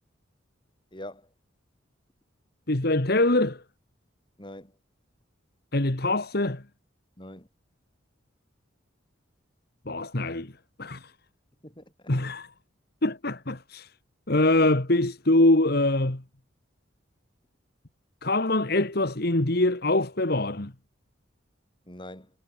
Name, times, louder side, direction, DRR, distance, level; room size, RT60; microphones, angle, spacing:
voice 1, 0.9-1.3 4.4-4.8 7.2-7.5 11.6-12.1 21.9-22.3, left 1 dB, 25° left, 7.5 m, -43 dB
voice 2, 2.7-3.6 5.7-6.6 9.9-10.5 10.8-11.1 12.1-12.5 13.0-13.9 14.3-16.2 18.2-20.7, left 2 dB, 50° left, 1.7 m, -24 dB
head